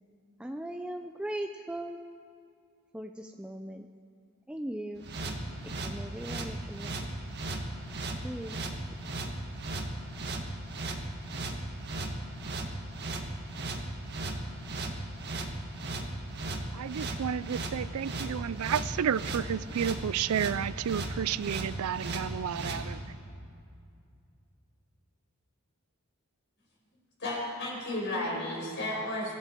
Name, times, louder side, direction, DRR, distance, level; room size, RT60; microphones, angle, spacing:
voice 1, 0.4-2.0 2.9-3.9 4.5-5.1 5.6-7.0 8.2-8.6, right 1 dB, 5° right, 4 dB, 0.4 m, -39 dB
sound 1, 5.0-22.8, right 2 dB, 50° right, 1.6 m, -36 dB
voice 2, 16.7-23.0, right 8 dB, 85° right, 18 dB, 0.4 m, -31 dB
voice 3, 27.2-29.4, left 1 dB, 55° left, -3 dB, 4.9 m, -33 dB
23.5 x 13.5 x 4.5 m, 2.4 s
head